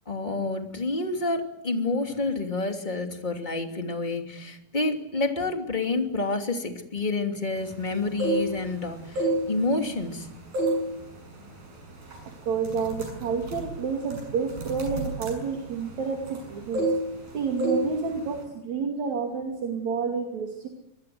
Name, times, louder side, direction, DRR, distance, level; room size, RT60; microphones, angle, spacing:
voice 1, 0.1-10.3, left 3 dB, 15° left, 4 dB, 2.4 m, -29 dB
sound 1, 8.0-8.7 9.1-10.2 10.5-10.9 11.3-11.5 12.1-12.3 12.6-16.4 16.7-17.3 17.6-17.9 18.2-18.4, right 2 dB, 75° right, 8.8 m, -28 dB
voice 2, 12.5-16.9 17.3-20.7, right 5 dB, 55° right, 3 dB, 3.7 m, -29 dB
25.5 x 21.0 x 7.9 m, 0.84 s
omnidirectional pair, 4.2 m